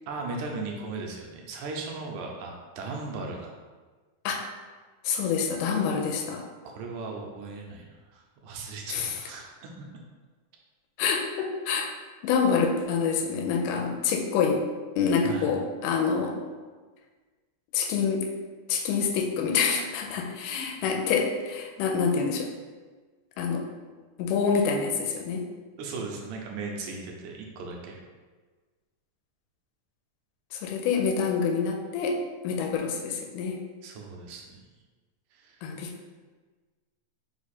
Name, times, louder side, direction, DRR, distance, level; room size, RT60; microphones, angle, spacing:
voice 1, 0.1-3.5 6.8-9.5 15.2-15.5 25.8-28.0 33.8-34.6 35.3-35.6, right 3 dB, 80° right, 0 dB, 2.0 m, -37 dB
voice 2, 5.0-6.4 8.9-9.2 11.0-11.9 12.2-14.6 15.0-16.4 17.7-18.3 18.7-22.5 23.4-23.6 24.2-25.5 30.5-33.6 35.6-35.9, left 5 dB, 90° left, 2 dB, 2.2 m, -27 dB
5.0 x 2.3 x 4.1 m, 1.4 s
omnidirectional pair, 3.7 m